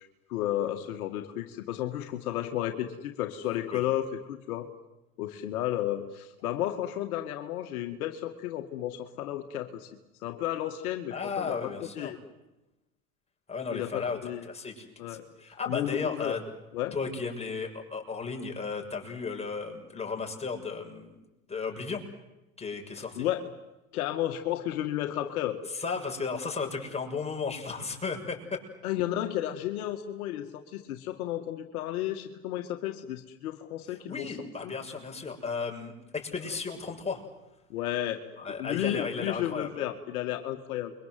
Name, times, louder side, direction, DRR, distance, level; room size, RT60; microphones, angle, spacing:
voice 1, 0.3-4.7 5.2-9.9 10.2-11.6 12.0-12.2 13.7-14.4 15.0-15.2 15.7-16.4 16.7-16.9 23.0-23.4 23.9-25.6 28.8-34.4 37.7-38.2 38.6-40.9, left 12 dB, 70° left, 6 dB, 2.0 m, -32 dB
voice 2, 11.1-12.1 13.5-14.2 14.5-16.4 16.9-21.2 21.5-22.0 22.6-23.3 25.7-28.6 33.9-37.2 38.4-39.9, left 5 dB, 15° left, 1 dB, 6.7 m, -34 dB
29.0 x 23.5 x 7.8 m, 0.98 s
hypercardioid pair, 95°, 45 cm